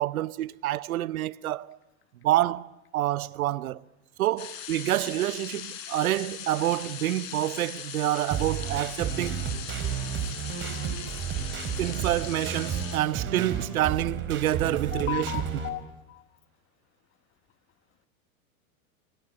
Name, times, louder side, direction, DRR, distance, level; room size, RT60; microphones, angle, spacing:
voice 1, 0.0-1.8 2.2-2.7 2.9-3.8 4.2-9.4 11.8-15.4, right 14 dB, 80° right, 1.0 m, -27 dB
sound 1, 4.4-13.0, left 9 dB, 65° left, 8.0 m, -40 dB
sound 2, 8.3-15.7, right 8 dB, 30° right, 4.6 m, -32 dB
voice 2, 14.9-16.2, left 15 dB, 30° left, 1.7 m, -35 dB
27.0 x 25.0 x 8.8 m
hypercardioid pair, 125°, 42 cm